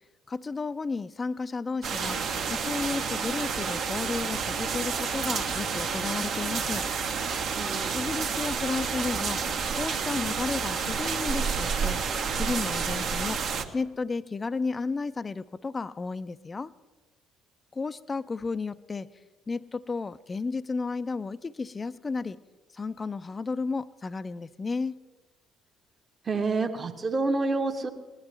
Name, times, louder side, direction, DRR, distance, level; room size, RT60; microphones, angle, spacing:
voice 1, 0.3-2.2 2.5-6.9 7.9-9.4 9.7-12.0 12.3-13.4 13.7-16.7 17.7-19.1 19.5-22.4 22.7-25.0, left 4 dB, 25° left, 15 dB, 0.4 m, -33 dB
sound 1, 1.8-13.6, right 6 dB, 55° right, 1.1 m, -30 dB
voice 2, 7.5-7.9 26.2-27.9, right 3 dB, 30° right, 4 dB, 1.1 m, -28 dB
20.0 x 11.5 x 3.3 m, 1.2 s
figure-of-eight pair, 50°, 0 cm